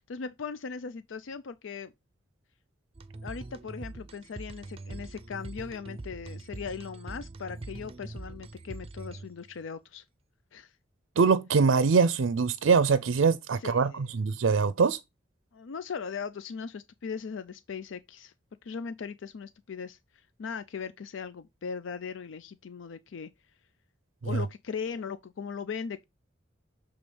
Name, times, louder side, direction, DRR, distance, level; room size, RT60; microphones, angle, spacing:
voice 1, 0.1-1.9 3.2-10.0 10.5-10.7 13.6-14.1 15.5-18.3 18.6-20.0 20.4-23.3 24.2-26.0, left 6 dB, 75° left, 0.4 m, -38 dB
sound 1, 2.9-9.6, right 2 dB, 30° right, 0.5 m, -43 dB
voice 2, 11.2-15.0 24.2-24.4, right 5 dB, 80° right, 0.5 m, -23 dB
6.9 x 3.5 x 5.0 m
head